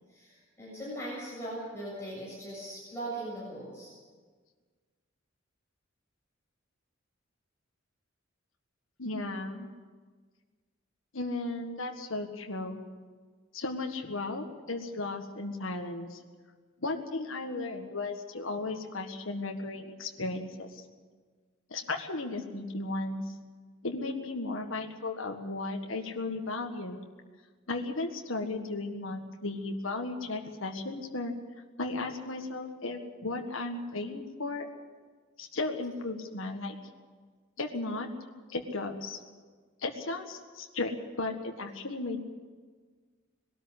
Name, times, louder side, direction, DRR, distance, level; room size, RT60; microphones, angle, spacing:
voice 1, 0.1-3.9, right 1 dB, 10° left, -8 dB, 7.3 m, -39 dB
voice 2, 9.0-9.7 11.1-12.8 13.5-16.2 16.8-20.8 21.7-23.3 23.8-27.0 27.7-31.3 31.8-34.6 35.4-36.7 37.6-38.1 38.5-39.2 39.8-42.2, left 2 dB, 70° left, 4 dB, 1.7 m, -35 dB
20.0 x 13.0 x 9.9 m, 1.5 s
head